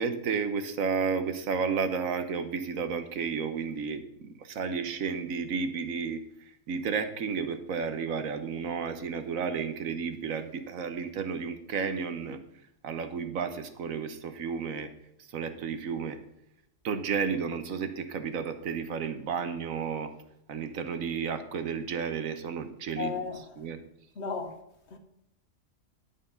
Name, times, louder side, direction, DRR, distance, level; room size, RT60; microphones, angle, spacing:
voice 1, 0.0-6.2 6.7-12.4 12.8-14.9 15.2-16.2 16.8-20.1 20.5-23.3 23.6-23.8, right 6 dB, 90° right, 1.4 m, -32 dB
voice 2, 23.0-23.6 24.2-24.6 24.9-25.0, left 5 dB, 55° left, 1.5 m, -35 dB
11.0 x 7.1 x 5.6 m
omnidirectional pair, 1.4 m